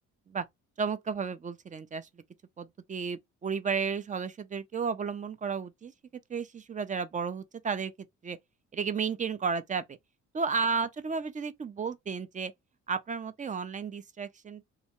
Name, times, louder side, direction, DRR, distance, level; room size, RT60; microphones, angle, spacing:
voice 1, 0.8-2.1 2.6-5.9 6.3-7.9 8.2-8.4 8.7-10.0 10.3-12.5 12.9-14.6, right 5 dB, 25° right, 0.4 m, -33 dB
2.8 x 2.2 x 2.8 m
cardioid pair, 90°, 30 cm